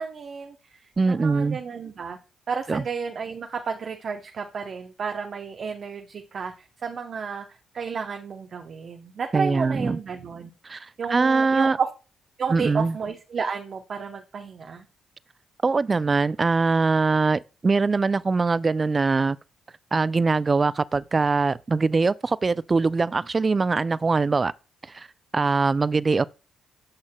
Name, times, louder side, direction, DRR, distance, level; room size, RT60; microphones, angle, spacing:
voice 1, 0.0-2.2 2.5-6.5 6.8-7.5 7.7-10.5 11.0-11.9 12.4-14.8, right 5 dB, 55° right, 0.7 m, -32 dB
voice 2, 1.0-1.6 2.7-2.8 9.3-10.0 10.6-11.8 12.5-13.0 15.6-19.4 19.9-24.5 24.9-25.1 25.3-26.2, right 4 dB, 35° right, 0.3 m, -22 dB
8.8 x 5.6 x 2.2 m
supercardioid pair, 60°, 0 cm